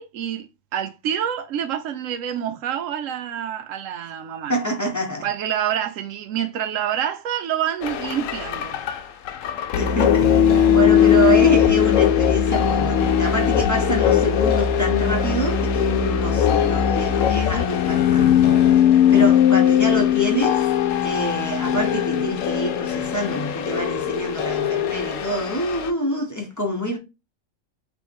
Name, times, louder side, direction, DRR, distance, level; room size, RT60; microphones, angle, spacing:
voice 1, 0.0-4.5 5.2-8.8, right 9 dB, 80° right, 0.9 m, -27 dB
voice 2, 4.5-5.3 9.8-18.6 18.8-20.7 21.0-27.0, equal, 15° left, 0.8 m, -26 dB
sound 1, 7.8-25.9, left 9 dB, 80° left, 1.0 m, -19 dB
3.3 x 3.1 x 4.2 m
omnidirectional pair, 1.4 m